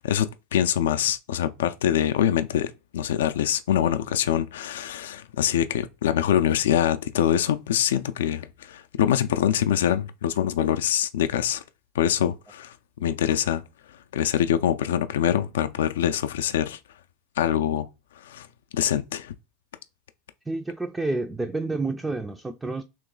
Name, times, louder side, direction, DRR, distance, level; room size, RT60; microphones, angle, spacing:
voice 1, 0.0-11.6 11.9-12.7 13.0-13.6 14.1-16.8 17.4-17.9 18.2-18.5 18.7-19.4, left 10 dB, 90° left, 0.3 m, -24 dB
voice 2, 20.5-22.8, right 2 dB, 10° right, 0.3 m, -29 dB
3.1 x 3.0 x 3.7 m
supercardioid pair, 120°, 0 cm